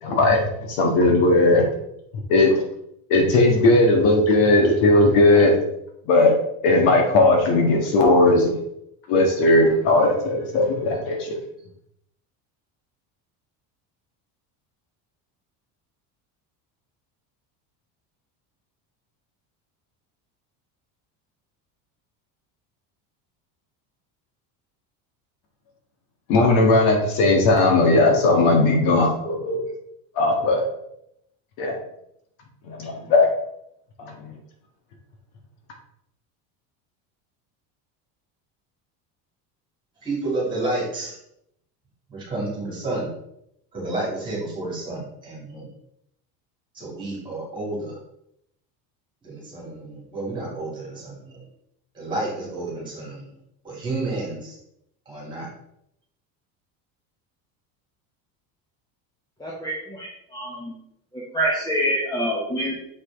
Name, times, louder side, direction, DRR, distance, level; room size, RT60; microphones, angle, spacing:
voice 1, 0.0-1.7 2.1-2.6 3.1-5.6 6.1-6.3 6.6-8.6 9.1-11.4 26.3-29.6 30.2-30.6 31.6-31.8 32.6-33.3 34.0-34.3, left 2 dB, 75° left, 1 dB, 1.8 m, -18 dB
voice 2, 40.0-41.2 42.1-43.1 43.7-45.7 46.7-48.0 49.2-51.4 51.9-53.3 53.6-54.6 55.1-55.5, right 2 dB, 10° right, -4 dB, 2.7 m, -30 dB
voice 3, 59.4-60.8 61.3-62.7, right 1 dB, 10° left, -5 dB, 1.0 m, -26 dB
6.4 x 5.0 x 3.7 m, 0.76 s
cardioid pair, 170°, 40 cm